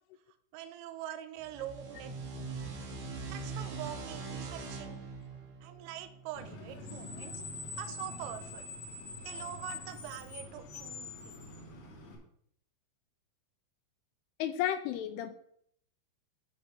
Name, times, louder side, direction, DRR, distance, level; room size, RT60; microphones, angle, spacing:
voice 1, 0.5-2.5 3.3-5.0 5.6-7.4 7.8-8.7 9.2-11.4, right 11 dB, 85° right, 9 dB, 3.3 m, -44 dB
sound 1, 1.4-6.7, right 4 dB, 60° right, 2.4 m, -42 dB
Screech, 6.3-12.2, left 2 dB, 60° left, 3.9 m, -44 dB
voice 2, 14.4-15.4, left 11 dB, 85° left, 9 dB, 2.8 m, -33 dB
12.0 x 4.1 x 5.2 m, 0.67 s
omnidirectional pair, 5.9 m